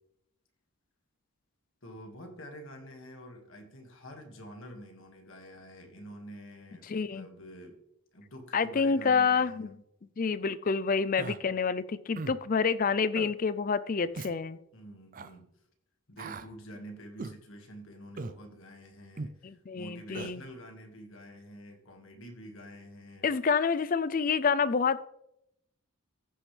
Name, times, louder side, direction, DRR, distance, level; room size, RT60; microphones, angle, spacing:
voice 1, 1.8-7.8 8.1-9.8 14.7-15.5 16.1-23.3, equal, 60° left, 3 dB, 1.9 m, -48 dB
voice 2, 6.9-7.3 8.5-9.7 10.2-14.6 19.4-20.4 23.2-25.1, left 5 dB, 40° left, 16 dB, 0.4 m, -28 dB
Human voice, 11.2-11.4 12.2-12.4 13.1-13.3 14.1-14.3 15.1-15.3 16.2-16.5 17.2-17.4 18.2-18.4 19.2-19.4 20.1-20.3, right 3 dB, 35° right, 0.4 m, -38 dB
15.0 x 6.5 x 3.3 m, 0.79 s
head